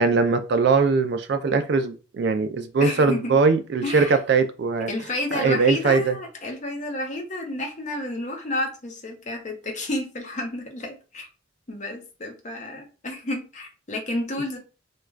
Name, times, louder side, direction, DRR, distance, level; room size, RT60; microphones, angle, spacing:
voice 1, 0.0-4.9 5.3-6.2, right 4 dB, 60° right, 0.4 m, -21 dB
voice 2, 2.8-3.4 3.8-4.2 4.9-11.3 11.7-14.6, left 1 dB, 40° left, 0.7 m, -31 dB
2.4 x 2.3 x 3.2 m
head